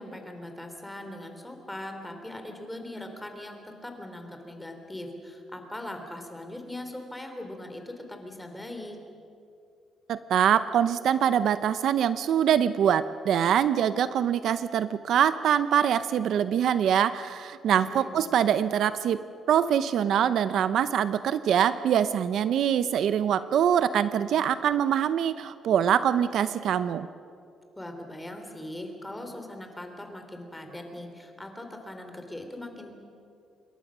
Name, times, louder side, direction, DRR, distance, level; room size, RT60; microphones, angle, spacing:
voice 1, 0.0-9.0 17.7-18.3 27.8-32.9, left 1 dB, 10° left, 5 dB, 3.0 m, -40 dB
voice 2, 10.1-27.1, right 9 dB, 65° right, 13 dB, 0.7 m, -24 dB
27.0 x 22.0 x 6.2 m, 2.5 s
cardioid pair, 140°, 0 cm